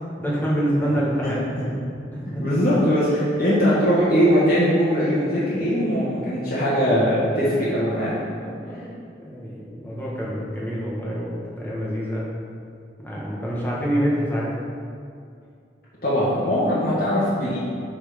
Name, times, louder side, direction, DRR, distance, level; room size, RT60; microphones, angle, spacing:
voice 1, 0.2-1.4 2.1-2.4 8.2-8.9 9.2-12.3 13.0-14.5, equal, 10° left, -6 dB, 1.5 m, -26 dB
voice 2, 1.2-1.7 2.3-8.2 16.0-17.6, equal, 55° left, -10 dB, 1.8 m, -21 dB
8.0 x 4.4 x 5.3 m, 2.4 s
head